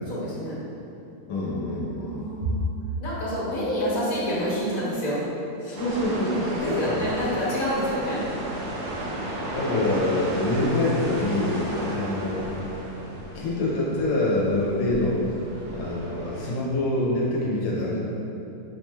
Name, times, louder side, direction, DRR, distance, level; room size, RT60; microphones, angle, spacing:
voice 1, 0.1-0.6 2.0-2.7 3.0-5.2 6.6-8.2 11.6-11.9, equal, 60° left, -9 dB, 1.4 m, -28 dB
voice 2, 1.3-2.5 5.6-6.7 9.5-12.5 13.2-15.2 15.7-18.0, left 1 dB, 85° left, -5 dB, 1.4 m, -26 dB
sound 1, 5.8-16.5, right 1 dB, 75° right, 1.2 m, -34 dB
5.6 x 3.1 x 2.2 m, 2.8 s
omnidirectional pair, 1.7 m